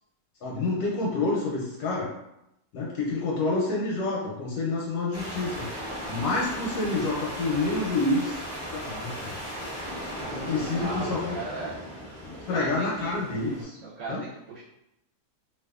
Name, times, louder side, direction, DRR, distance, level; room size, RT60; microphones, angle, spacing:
voice 1, 0.4-2.1 2.7-8.4 8.7-9.4 10.3-11.3 12.2-13.8 14.1-14.2, left 3 dB, 90° left, -4 dB, 1.1 m, -28 dB
sound 1, 5.1-13.6, equal, 15° right, 0.5 m, -37 dB
voice 2, 10.7-11.8 12.3-13.3 13.8-14.6, right 2 dB, 65° right, -8 dB, 0.9 m, -38 dB
2.6 x 2.3 x 2.3 m, 0.86 s
omnidirectional pair, 1.6 m